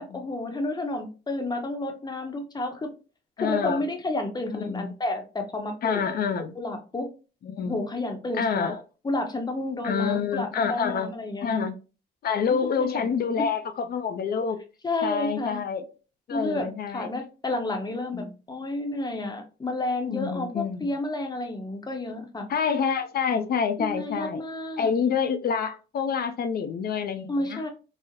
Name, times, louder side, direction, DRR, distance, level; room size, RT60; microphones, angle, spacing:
voice 1, 0.0-2.9 3.4-6.0 6.6-7.1 7.7-8.8 9.0-11.6 12.9-13.5 14.8-15.6 16.3-16.7 16.9-22.5 23.8-24.9 27.3-27.7, left 2 dB, 20° left, 0.7 m, -31 dB
voice 2, 3.4-3.8 4.5-4.9 5.8-6.5 7.4-7.8 8.3-8.8 9.8-11.1 11.4-11.7 12.2-14.6 15.0-15.9 16.3-17.1 18.1-18.3 20.1-21.0 22.5-24.4 24.8-27.7, left 6 dB, 50° left, 0.5 m, -27 dB
3.8 x 2.0 x 2.7 m
cardioid pair, 90°, 20 cm